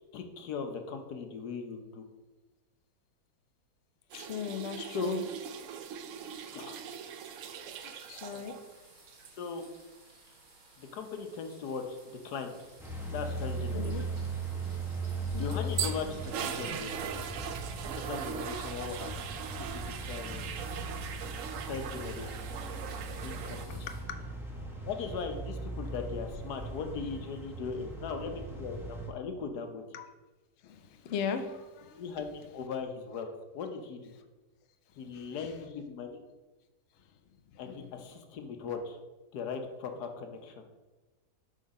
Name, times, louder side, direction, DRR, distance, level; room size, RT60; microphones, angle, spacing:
voice 1, 0.1-2.0 4.9-5.2 6.2-6.8 7.8-7.9 8.3-8.5 9.4-9.6 10.8-12.0 12.2-12.6 13.1-14.0 15.3-17.1 17.9-19.1 19.7-20.5 21.7-22.5 23.2-23.6 24.8-29.8 32.0-34.1 35.0-36.2 37.6-39.0 39.3-40.6, left 5 dB, 85° left, 5 dB, 1.4 m, -39 dB
voice 2, 4.1-5.2 7.9-8.6 13.7-14.0 15.3-15.7 22.3-22.4 23.2-24.0 29.9-30.1 30.6-32.0 35.1-35.5 37.5-37.6, left 7 dB, 60° left, 7 dB, 0.8 m, -39 dB
sound 1, 4.1-8.7 9.0-9.3 15.1-23.7, right 8 dB, 65° right, 0.8 m, -40 dB
sound 2, 6.1-24.0, right 2 dB, 35° right, 1.4 m, -56 dB
sound 3, 12.8-29.1, right 2 dB, ahead, 0.9 m, -39 dB
7.5 x 3.9 x 5.3 m, 1.1 s
omnidirectional pair, 1.7 m